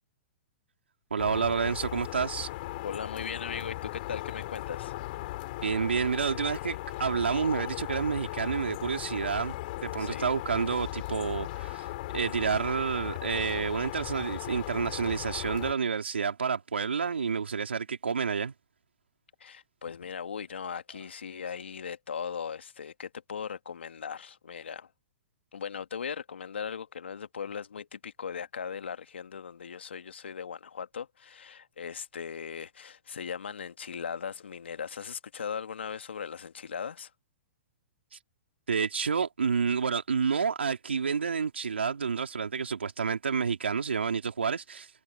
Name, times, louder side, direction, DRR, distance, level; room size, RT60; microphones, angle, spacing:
voice 1, 1.1-2.5 5.6-9.6 9.8-18.5 38.7-44.9, right 6 dB, 85° right, 3.6 m, -29 dB
sound 1, 1.2-15.7, left 18 dB, 50° left, 4.7 m, -37 dB
voice 2, 2.8-4.9 10.0-10.3 19.4-24.9 25.5-37.1, left 7 dB, 80° left, 2.2 m, -38 dB
hypercardioid pair, 120°, 6 cm